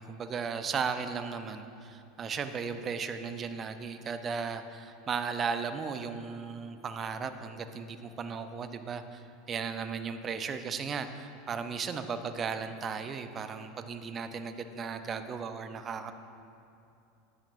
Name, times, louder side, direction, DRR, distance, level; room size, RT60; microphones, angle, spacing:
voice 1, 0.0-16.1, right 5 dB, 30° right, 9 dB, 0.7 m, -36 dB
13.5 x 10.5 x 2.6 m, 2.7 s
hypercardioid pair, 85°, 0 cm